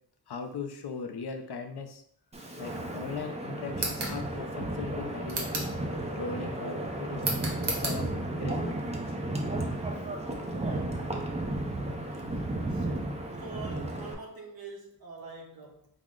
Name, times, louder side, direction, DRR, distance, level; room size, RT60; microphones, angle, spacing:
voice 1, 0.3-2.0 2.6-5.7 6.2-8.8, left 5 dB, 70° left, 0.6 m, -39 dB
Wind, 2.3-14.1, right 1 dB, 15° right, 0.5 m, -34 dB
sound 1, 3.7-4.2 5.3-5.8 7.2-8.0, right 2 dB, 85° right, 1.0 m, -32 dB
voice 2, 9.9-11.0 12.0-12.4 12.7-15.9, right 4 dB, 60° right, 1.0 m, -46 dB
4.8 x 2.0 x 3.6 m
wide cardioid pair, 110°, 40 cm